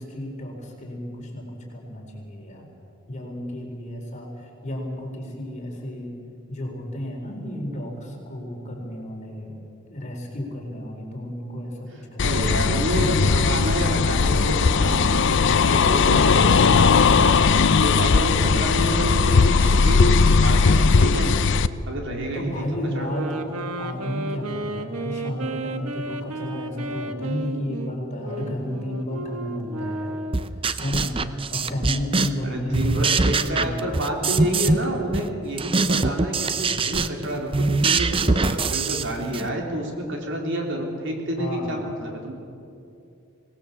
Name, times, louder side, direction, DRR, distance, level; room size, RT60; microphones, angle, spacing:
voice 1, 0.0-2.7 3.1-6.1 6.5-9.6 9.9-12.4 22.3-30.2 30.8-31.2 31.5-33.8 41.4-41.7, left 1 dB, 35° left, 0 dB, 4.1 m, -32 dB
voice 2, 11.9-15.2 15.6-17.4 17.8-21.5 21.9-22.6 22.9-23.1 32.4-42.3, right 1 dB, 55° right, 1 dB, 3.6 m, -29 dB
sound 1, 12.2-21.7, left 4 dB, 55° left, 0.6 m, -18 dB
sound 2, 23.0-30.6, right 2 dB, 85° right, 1.3 m, -33 dB
sound 3, 30.3-32.5 32.7-34.9 35.1-39.5, right 3 dB, 25° right, 0.6 m, -23 dB
24.5 x 18.5 x 7.2 m, 2.6 s
head